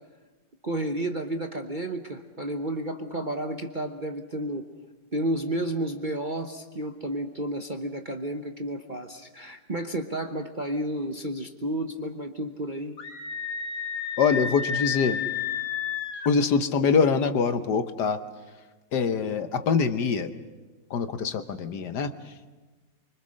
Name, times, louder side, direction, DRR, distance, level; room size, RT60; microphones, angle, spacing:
voice 1, 0.6-4.7 5.1-13.0, right 1 dB, 35° right, 4 dB, 0.9 m, -31 dB
Screaming, 13.0-16.3, left 7 dB, 45° left, 1.6 m, -31 dB
voice 2, 14.2-15.2 16.2-18.2 18.9-20.3 20.9-22.1, left 5 dB, 65° left, 10 dB, 1.6 m, -24 dB
25.0 x 24.5 x 6.5 m, 1.3 s
omnidirectional pair, 2.0 m